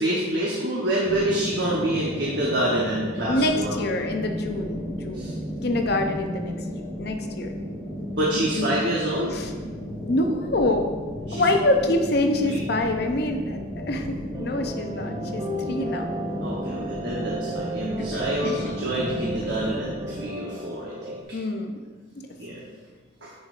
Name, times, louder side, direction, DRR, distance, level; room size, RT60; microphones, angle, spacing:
voice 1, 0.0-3.8 5.1-5.3 8.2-9.4 11.3-11.4 12.5-12.6 16.4-21.2 22.4-22.6 23.2-23.3, right 1 dB, 60° right, -4 dB, 1.0 m, -27 dB
sound 1, 1.0-20.2, equal, 5° left, 1.2 m, -34 dB
voice 2, 3.3-5.4 5.6-6.6 7.0-7.5 8.3-8.8 9.3-9.5 10.0-10.9 11.3-16.1 18.1-18.6 21.3-21.7 22.1-22.6, left 1 dB, 50° left, 4 dB, 0.6 m, -26 dB
sound 2, 14.3-21.2, right 1 dB, 20° right, 0.4 m, -35 dB
9.4 x 5.2 x 2.5 m, 1.4 s
head